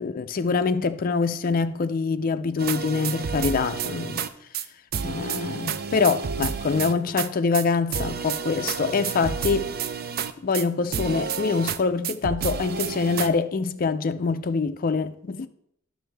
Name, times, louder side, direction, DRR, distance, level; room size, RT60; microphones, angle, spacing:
voice 1, 0.0-4.3 5.0-9.7 10.4-15.5, left 4 dB, 40° left, 0.4 m, -25 dB
sound 1, 2.6-4.3 4.5-4.7 4.9-7.3 7.5-7.7 7.9-10.7 10.9-11.8 12.0-13.3, right 7 dB, 45° right, 0.4 m, -30 dB
11.0 x 6.3 x 3.4 m
head